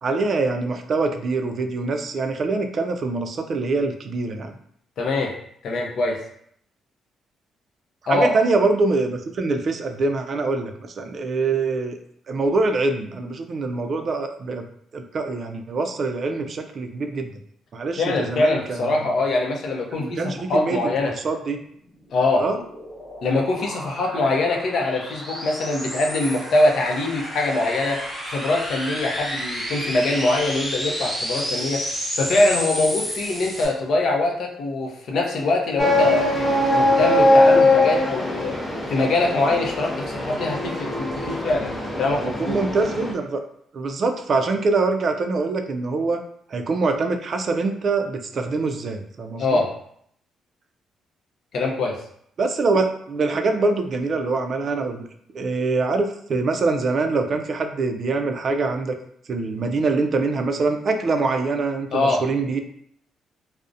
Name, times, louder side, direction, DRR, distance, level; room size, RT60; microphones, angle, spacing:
voice 1, 0.0-4.6 8.1-12.0 12.3-14.7 14.9-17.3 17.7-19.0 20.0-21.6 22.4-22.6 42.2-43.4 43.7-46.2 46.5-49.6 52.4-55.0 55.3-58.9 59.3-62.6, right 3 dB, 50° right, 6 dB, 0.3 m, -24 dB
voice 2, 5.0-5.3 5.6-6.2 8.1-8.3 18.0-20.2 20.5-21.1 22.1-22.4 23.2-28.0 28.3-31.9 32.1-36.3 36.7-38.6 38.9-41.7 42.0-42.6 49.4-49.7 51.5-52.0 61.9-62.2, left 2 dB, 65° left, 0 dB, 0.5 m, -23 dB
sound 1, 21.8-33.7, equal, ahead, 0.8 m, -31 dB
sound 2, 35.8-43.1, left 1 dB, 15° left, 0.5 m, -21 dB
2.4 x 2.0 x 2.5 m, 0.68 s
cardioid pair, 90°, 0 cm